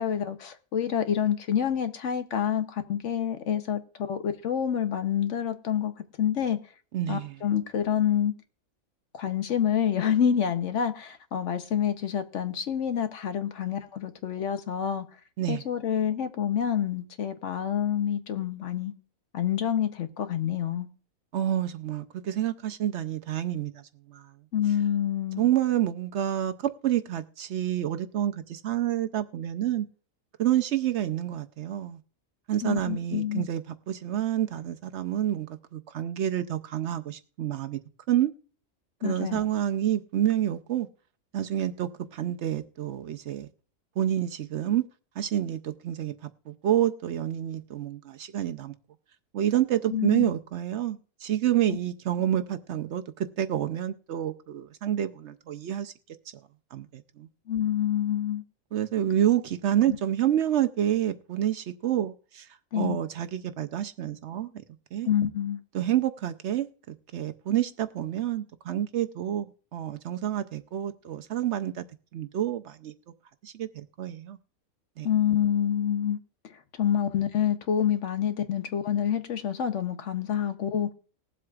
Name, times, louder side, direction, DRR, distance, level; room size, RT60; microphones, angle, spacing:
voice 1, 0.0-6.6 7.1-8.3 9.1-15.0 15.5-18.9 19.3-20.9 24.5-25.5 32.6-33.5 39.0-39.4 49.9-50.3 57.5-58.4 59.9-60.0 62.7-63.0 65.0-65.6 75.0-76.2 76.5-80.9, left 9 dB, 60° left, 1.0 m, -27 dB
voice 2, 6.9-7.3 15.4-15.6 21.3-23.8 24.1-24.3 25.4-29.9 30.4-32.0 32.5-37.8 38.1-38.3 39.0-40.9 41.3-43.5 44.0-44.8 45.2-46.1 46.5-48.7 49.3-55.9 56.7-57.3 58.7-62.5 62.7-64.5 64.9-65.1 65.7-71.9 72.1-72.9 73.4-74.4 75.0-75.1, right 11 dB, 65° right, 0.8 m, -28 dB
20.0 x 7.7 x 2.3 m
omnidirectional pair, 1.5 m